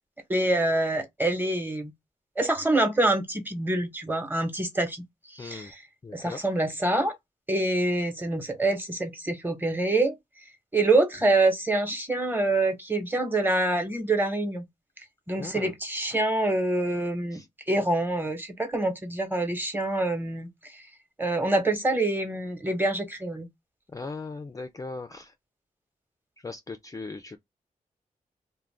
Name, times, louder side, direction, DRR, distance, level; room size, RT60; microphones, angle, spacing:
voice 1, 0.3-1.9 2.4-5.0 5.3-5.8 6.1-7.1 7.5-10.1 10.7-14.6 15.3-20.8 21.2-23.5, right 2 dB, 15° right, 1.0 m, -26 dB
voice 2, 5.4-5.7 6.0-6.4 15.4-15.7 17.3-17.5 23.9-25.3 26.4-27.4, left 3 dB, 25° left, 0.4 m, -38 dB
2.4 x 2.1 x 3.3 m
cardioid pair, 75°, 14 cm